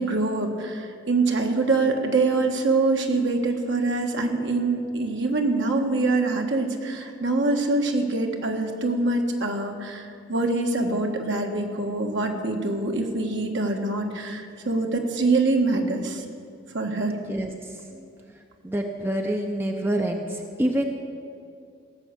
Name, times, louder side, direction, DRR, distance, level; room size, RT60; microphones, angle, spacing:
voice 1, 0.0-16.2 16.7-17.2, right 3 dB, 55° right, 3 dB, 1.4 m, -24 dB
voice 2, 17.3-18.1 18.6-20.9, right 1 dB, 10° right, 3 dB, 0.6 m, -27 dB
17.0 x 6.6 x 8.2 m, 2.5 s
head